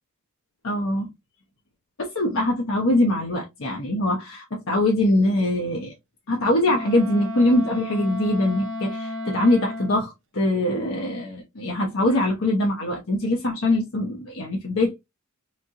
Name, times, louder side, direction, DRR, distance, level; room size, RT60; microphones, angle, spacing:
voice 1, 0.6-1.1 2.0-5.9 6.3-15.0, left 1 dB, 65° left, 0.9 m, -23 dB
Wind instrument woodwind instrument, 6.6-10.1, left 2 dB, 60° right, 0.8 m, -33 dB
3.7 x 3.3 x 2.8 m
head